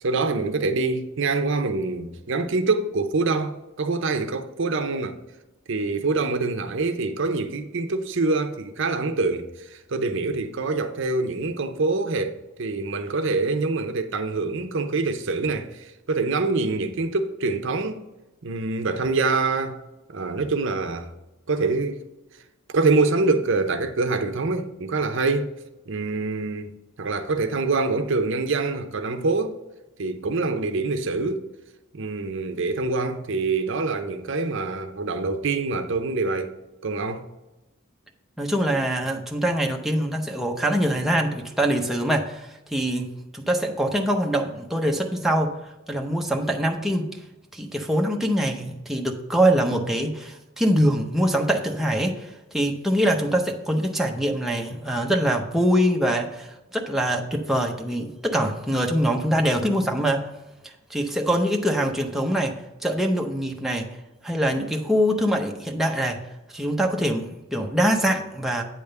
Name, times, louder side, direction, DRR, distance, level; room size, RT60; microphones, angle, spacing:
voice 1, 0.0-5.2 5.7-18.0 18.4-19.8 20.1-21.1 21.5-22.0 22.7-25.5 25.9-26.7 27.0-29.6 30.0-31.4 31.9-36.5 36.8-37.2, right 3 dB, 65° right, 0.7 m, -25 dB
voice 2, 38.4-45.5 45.9-47.1 47.5-60.3 60.6-63.9 64.2-66.2 66.5-68.6, equal, ahead, 0.6 m, -24 dB
8.8 x 3.5 x 6.6 m
head